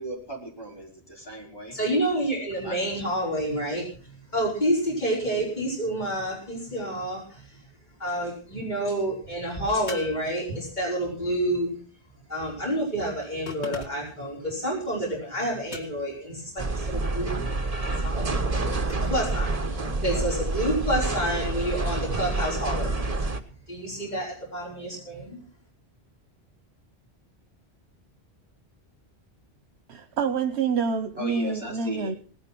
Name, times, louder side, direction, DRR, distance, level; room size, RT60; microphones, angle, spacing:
voice 1, 0.0-1.8 2.1-3.0 5.4-5.5 31.2-32.2, right 1 dB, 20° left, 5.0 m, -38 dB
voice 2, 1.7-7.6 8.0-11.8 12.3-17.4 18.0-23.0 23.7-25.4, right 1 dB, 45° left, 5.6 m, -29 dB
sound 1, 9.9-11.0 13.5-14.2 15.7-16.3 18.5-19.2, left 3 dB, 85° left, 2.3 m, -41 dB
sound 2, 16.6-23.4, right 2 dB, 35° right, 1.4 m, -28 dB
voice 3, 29.9-32.2, right 5 dB, 80° right, 1.2 m, -27 dB
18.5 x 10.5 x 6.0 m
omnidirectional pair, 1.1 m